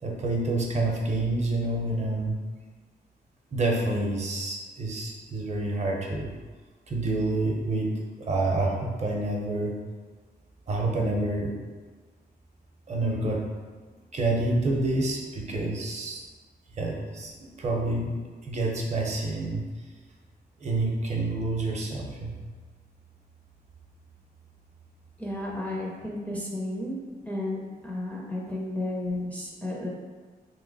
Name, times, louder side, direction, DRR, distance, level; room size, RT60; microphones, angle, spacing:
voice 1, 0.0-2.4 3.5-6.3 6.9-7.9 8.3-9.7 10.7-11.5 12.9-13.4 14.1-16.2 16.8-18.1 18.4-19.6 20.6-22.3, right 2 dB, 45° right, -1 dB, 0.6 m, -28 dB
voice 2, 25.2-27.0 27.3-29.9, left 1 dB, 10° left, -3 dB, 0.4 m, -32 dB
3.0 x 2.9 x 3.8 m, 1.4 s
wide cardioid pair, 170°, 17 cm